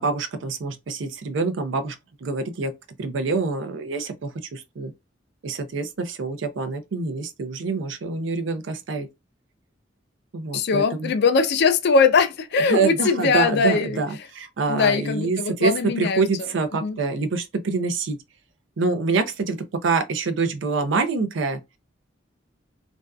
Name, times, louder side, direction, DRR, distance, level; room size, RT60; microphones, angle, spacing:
voice 1, 0.0-2.0 2.2-2.7 3.0-4.9 5.4-9.1 10.3-11.1 12.7-18.2 18.8-19.6 19.8-21.6, right 4 dB, 70° right, 0.5 m, -26 dB
voice 2, 10.5-14.0 14.7-16.2 16.8-17.0, left 4 dB, 60° left, 0.4 m, -21 dB
2.5 x 2.2 x 2.2 m
head